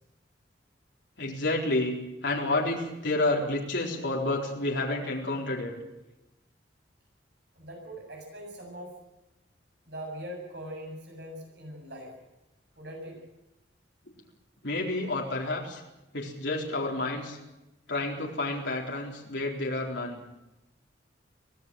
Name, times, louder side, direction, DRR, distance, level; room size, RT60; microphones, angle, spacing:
voice 1, 1.2-5.7 14.6-15.8 16.1-17.4 17.9-20.2, left 2 dB, 70° left, -1 dB, 4.1 m, -30 dB
voice 2, 7.5-8.9 9.9-12.1 12.8-13.3 15.0-15.1, equal, 60° right, 1 dB, 7.9 m, -41 dB
24.0 x 17.0 x 7.7 m, 0.95 s
head